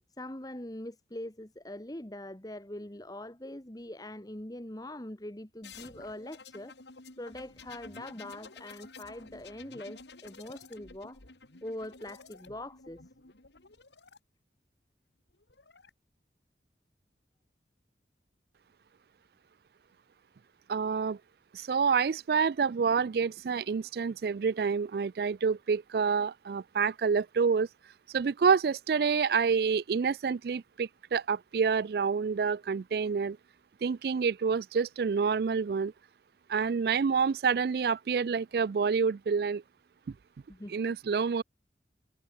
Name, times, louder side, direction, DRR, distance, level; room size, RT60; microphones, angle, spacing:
voice 1, 0.2-6.7 7.2-11.2 11.6-13.0 40.5-40.8, left 1 dB, 20° left, 1.5 m, -42 dB
sound 1, 5.6-14.2 15.3-15.9, left 4 dB, 80° left, 2.5 m, -51 dB
voice 2, 20.7-21.2 21.5-27.7 28.1-33.4 33.8-35.9 36.5-39.6 40.1-40.2 40.7-41.4, right 5 dB, 60° right, 0.4 m, -28 dB
head